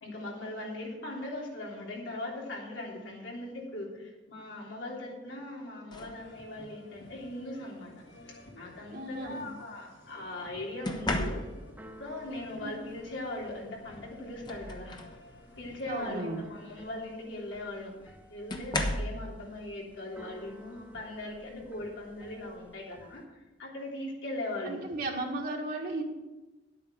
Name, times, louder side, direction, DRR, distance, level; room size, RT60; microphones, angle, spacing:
voice 1, 0.0-7.9 8.3-11.4 12.0-15.0 15.6-23.2 23.6-24.8, left 1 dB, 85° left, -3 dB, 3.3 m, -40 dB
sound 1, 5.9-6.3 7.5-7.8 10.8-11.8 13.6-13.7 14.1-15.2 15.7-16.0 17.3-17.4 18.5-19.2 20.9-21.1 21.6-21.9, left 1 dB, 25° left, 1.1 m, -34 dB
sound 2, 6.2-16.1, left 1 dB, 65° left, 2.3 m, -54 dB
voice 2, 8.9-9.4 12.6-12.8 15.9-16.4 24.6-26.0, right 2 dB, 55° right, -1 dB, 1.8 m, -35 dB
Keyboard (musical), 11.1-23.2, equal, 10° right, 1.0 m, -54 dB
11.0 x 8.6 x 6.2 m, 1.1 s
head